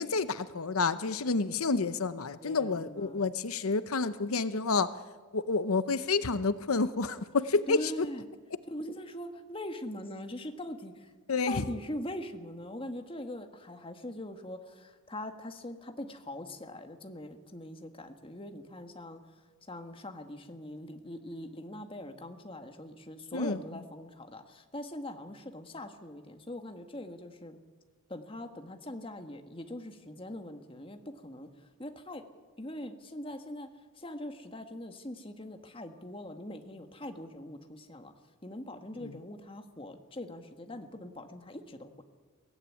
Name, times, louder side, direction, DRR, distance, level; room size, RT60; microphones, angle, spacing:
voice 1, 0.0-5.0 5.3-8.1 11.3-11.6 23.3-23.6 39.0-39.1, left 4 dB, 90° left, 13 dB, 0.8 m, -29 dB
voice 2, 2.4-3.2 7.7-8.2 8.7-11.1 11.5-19.2 19.7-27.6 28.1-32.2 32.6-33.7 33.9-38.1 38.4-42.0, left 1 dB, 25° left, 6 dB, 1.7 m, -42 dB
23.0 x 16.5 x 9.9 m, 1.4 s
head